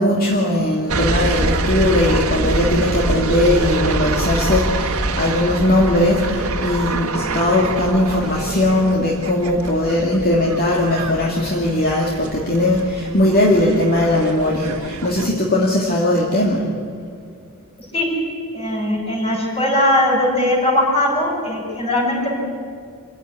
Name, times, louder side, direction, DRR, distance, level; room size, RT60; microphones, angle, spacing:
voice 1, 0.0-16.6, left 1 dB, 45° left, -2 dB, 2.6 m, -19 dB
sound 1, 0.9-15.3, right 2 dB, 70° right, 1.6 m, -25 dB
voice 2, 18.5-22.3, left 1 dB, 25° left, 0 dB, 6.5 m, -19 dB
26.5 x 15.5 x 9.8 m, 2.2 s
head